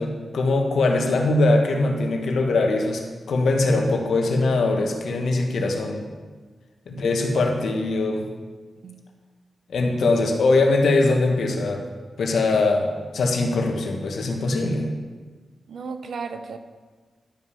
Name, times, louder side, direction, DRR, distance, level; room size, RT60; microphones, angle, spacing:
voice 1, 0.0-6.1 6.9-8.3 9.7-11.8 12.2-14.9, left 2 dB, 80° left, 2 dB, 1.5 m, -22 dB
voice 2, 6.9-7.3 8.8-9.0 15.7-16.6, right 5 dB, 75° right, 9 dB, 0.8 m, -35 dB
12.0 x 5.5 x 7.0 m, 1.4 s
cardioid pair, 55°, 0 cm